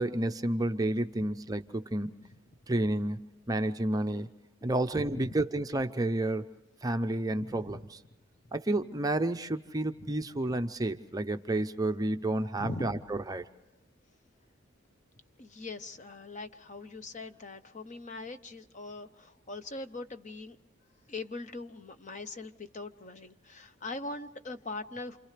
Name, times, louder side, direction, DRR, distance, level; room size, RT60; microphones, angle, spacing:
voice 1, 0.0-2.1 2.7-4.3 4.6-6.5 6.8-7.8 8.5-13.4, right 1 dB, 20° right, 8 dB, 0.6 m, -30 dB
voice 2, 7.4-7.8 10.0-10.1 12.6-13.0 15.4-20.6 21.1-25.2, left 2 dB, 35° left, 9 dB, 0.8 m, -41 dB
29.0 x 28.0 x 3.3 m, 0.99 s
head